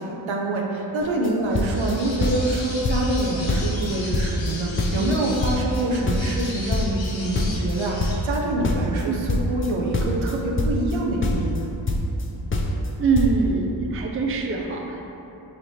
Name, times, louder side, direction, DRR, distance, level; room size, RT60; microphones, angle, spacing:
voice 1, 0.0-11.7, right 1 dB, 80° right, -1 dB, 0.7 m, -26 dB
sound 1, 1.0-1.3 1.5-2.6 2.8-3.2 3.5-5.2 5.4-8.4 8.6-11.0 11.2-12.2 12.5-12.9 13.2-13.3, left 2 dB, 30° left, 0.4 m, -24 dB
sound 2, 1.5-8.2, left 2 dB, 70° left, 1.0 m, -37 dB
voice 2, 13.0-15.1, right 4 dB, 30° right, 1 dB, 0.4 m, -24 dB
5.0 x 2.9 x 2.7 m, 3.0 s
cardioid pair, 50°, 47 cm